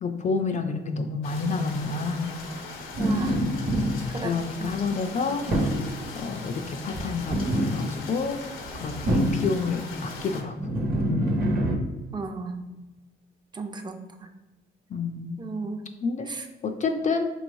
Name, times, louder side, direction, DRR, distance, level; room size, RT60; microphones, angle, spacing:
voice 1, 0.0-2.4 4.2-5.5 6.2-8.4 8.7-10.5 14.9-15.4 16.0-16.3 16.6-17.3, left 4 dB, 40° left, 5 dB, 0.4 m, -29 dB
sound 1, 1.2-10.4, left 3 dB, 85° left, 0.7 m, -40 dB
sound 2, 2.9-4.8 5.5-6.0 6.9-8.0 8.7-9.6 10.6-11.7, equal, 45° right, 1.1 m, -25 dB
voice 2, 3.0-3.4 4.1-4.3 4.6-4.7 12.1-12.6 13.5-14.0 15.4-15.9 16.3-16.5, right 4 dB, 20° right, 5 dB, 0.5 m, -34 dB
5.3 x 3.1 x 2.6 m, 1.2 s
cardioid pair, 90°, 20 cm